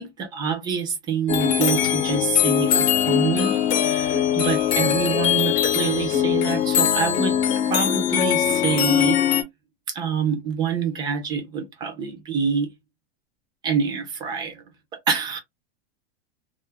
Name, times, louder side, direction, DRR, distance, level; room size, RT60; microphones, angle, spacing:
voice 1, 0.0-7.4 7.7-9.4 9.9-12.7 13.6-14.6 14.9-15.4, right 6 dB, 15° right, 0.3 m, -26 dB
sound 1, 1.3-9.4, left 10 dB, 40° left, 0.7 m, -21 dB
2.3 x 2.0 x 3.2 m
supercardioid pair, 155°, 32 cm